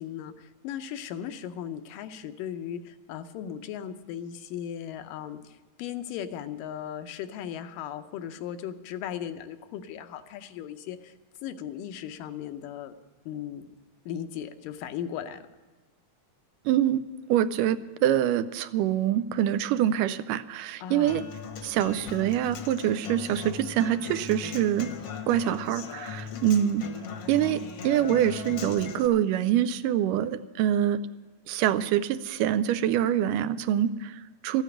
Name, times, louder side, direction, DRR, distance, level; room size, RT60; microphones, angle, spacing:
voice 1, 0.0-11.1 11.4-12.9 13.3-13.7 14.1-15.4 20.8-21.2 26.3-26.6, left 9 dB, 80° left, 8 dB, 2.4 m, -37 dB
voice 2, 16.7-17.0 17.3-21.2 21.6-24.9 25.3-26.8 27.3-31.0 31.5-34.6, right 11 dB, 80° right, 13 dB, 2.1 m, -25 dB
Human voice / Acoustic guitar, 21.1-29.1, left 6 dB, 60° left, 1.6 m, -39 dB
14.0 x 9.1 x 8.8 m, 1.3 s
omnidirectional pair, 3.9 m